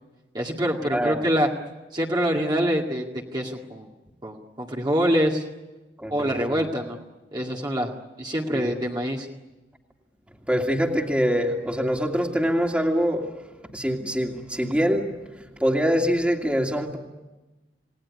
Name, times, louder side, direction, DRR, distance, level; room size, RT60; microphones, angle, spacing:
voice 1, 0.3-1.5 1.9-3.0 3.3-3.9 4.2-5.4 6.1-7.0 7.3-7.9 8.2-9.3, equal, 25° right, -1 dB, 2.2 m, -25 dB
voice 2, 6.0-6.6 8.5-8.8 10.5-13.3 13.7-15.1 15.6-17.0, equal, 5° right, 2 dB, 2.6 m, -24 dB
29.5 x 18.5 x 9.8 m, 1.1 s
head